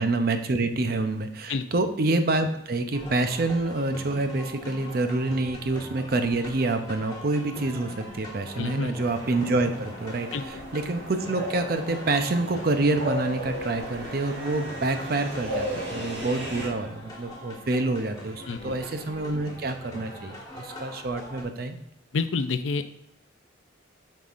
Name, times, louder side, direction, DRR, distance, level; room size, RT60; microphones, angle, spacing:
voice 1, 0.0-21.8, right 2 dB, 55° right, 8 dB, 0.6 m, -27 dB
sound 1, 2.9-21.4, left 1 dB, 20° left, 1.6 m, -42 dB
voice 2, 8.6-8.9 10.3-10.6 18.5-18.8 22.1-22.9, left 4 dB, 85° left, 11 dB, 0.5 m, -28 dB
sound 2, 9.0-16.7, equal, 85° right, 1.6 m, -36 dB
7.4 x 5.5 x 2.5 m, 0.79 s
head